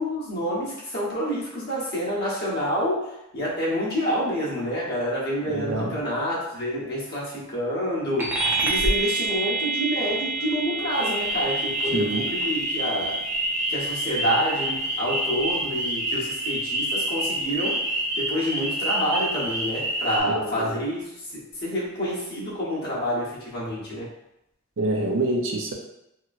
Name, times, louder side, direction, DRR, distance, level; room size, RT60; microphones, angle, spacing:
voice 1, 0.0-13.2 13.7-17.8 18.1-24.1, equal, 50° left, -7 dB, 1.1 m, -28 dB
voice 2, 5.5-6.0 11.9-12.2 20.3-20.8 24.8-25.7, right 2 dB, 65° right, 0 dB, 0.6 m, -26 dB
sound 1, 8.2-18.0, right 3 dB, 10° right, 0.5 m, -30 dB
sound 2, 10.9-20.2, right 1 dB, 40° right, 1.0 m, -28 dB
2.9 x 2.9 x 2.5 m, 0.85 s
head